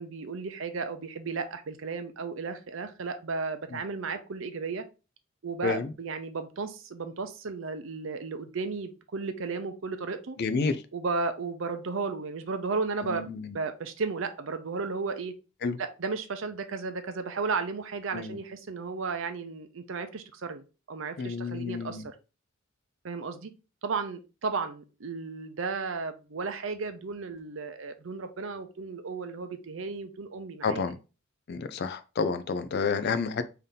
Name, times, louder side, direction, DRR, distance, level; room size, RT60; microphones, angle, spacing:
voice 1, 0.0-4.8 5.4-10.4 10.9-15.3 15.8-22.1 23.0-23.5 23.8-30.9, right 4 dB, 65° right, 0.6 m, -34 dB
voice 2, 10.4-10.8 13.0-13.5 15.6-15.8 18.1-18.4 21.2-22.0 30.6-31.0 31.5-33.4, left 5 dB, 50° left, 0.4 m, -30 dB
3.4 x 2.8 x 3.8 m
head